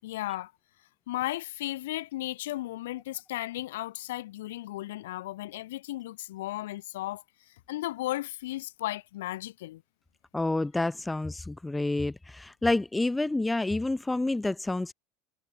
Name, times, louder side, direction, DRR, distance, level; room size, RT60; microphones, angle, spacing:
voice 1, 0.0-0.5 1.1-9.8, left 16 dB, 70° left, 5.4 m, -35 dB
voice 2, 10.3-14.9, left 2 dB, 10° left, 1.3 m, -28 dB
hypercardioid pair, 80°, 0 cm